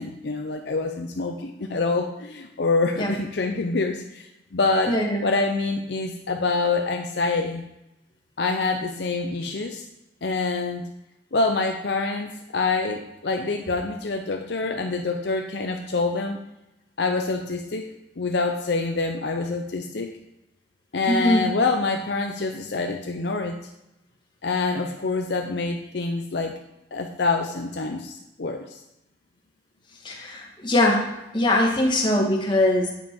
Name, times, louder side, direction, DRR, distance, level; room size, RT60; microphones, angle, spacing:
voice 1, 0.0-7.6 8.4-9.8 10.2-10.9 11.3-16.4 17.0-17.9 18.2-20.2 20.9-23.6 24.4-26.6 26.9-28.8, left 3 dB, 60° left, 3 dB, 0.6 m, -26 dB
voice 2, 4.9-5.2 21.1-21.4 30.0-31.1 31.3-32.9, left 1 dB, 25° left, 0 dB, 1.4 m, -21 dB
8.6 x 5.2 x 4.4 m, 0.93 s
head